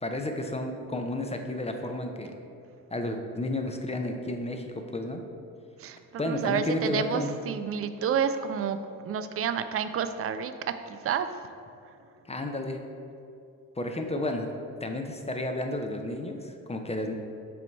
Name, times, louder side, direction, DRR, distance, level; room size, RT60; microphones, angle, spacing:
voice 1, 0.0-2.4 2.9-5.2 6.2-7.4 12.3-12.8 13.8-14.5 14.8-17.1, left 1 dB, 15° left, 4 dB, 0.5 m, -32 dB
voice 2, 5.8-11.3, right 7 dB, 35° right, 10 dB, 0.4 m, -30 dB
7.0 x 3.0 x 4.4 m, 2.5 s
hypercardioid pair, 45°, 44 cm